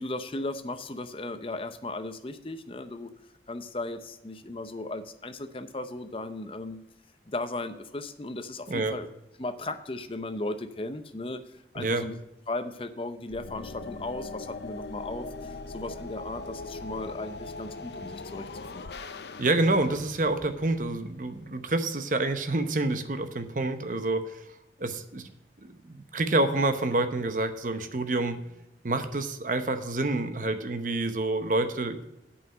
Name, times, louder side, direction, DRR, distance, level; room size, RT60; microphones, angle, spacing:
voice 1, 0.0-3.1 3.5-6.8 7.3-9.1 9.4-12.2 12.5-18.9, left 2 dB, 30° left, 9 dB, 0.6 m, -36 dB
sound 1, 13.3-21.4, left 3 dB, 70° left, 0.6 m, -41 dB
voice 2, 19.4-24.5 24.8-25.3 25.6-28.4 28.8-32.0, right 2 dB, 45° right, 8 dB, 0.9 m, -28 dB
8.4 x 5.7 x 7.6 m, 0.88 s
head